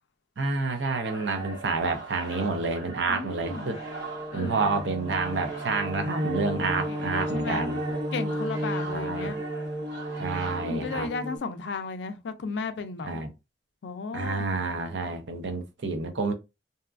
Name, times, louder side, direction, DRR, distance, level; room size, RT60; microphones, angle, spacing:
voice 1, 0.4-3.8 4.3-7.8 8.8-9.3 10.2-11.1 13.0-13.3 14.1-16.3, right 3 dB, 85° right, 0.6 m, -29 dB
sound 1, 1.0-11.5, right 3 dB, 70° right, 1.0 m, -41 dB
voice 2, 3.1-3.7 4.3-4.7 6.9-7.7 8.1-9.4 10.6-13.1 13.8-14.5, left 4 dB, 80° left, 0.4 m, -34 dB
sound 2, 3.4-11.4, equal, 25° right, 0.3 m, -33 dB
2.7 x 2.3 x 2.3 m
head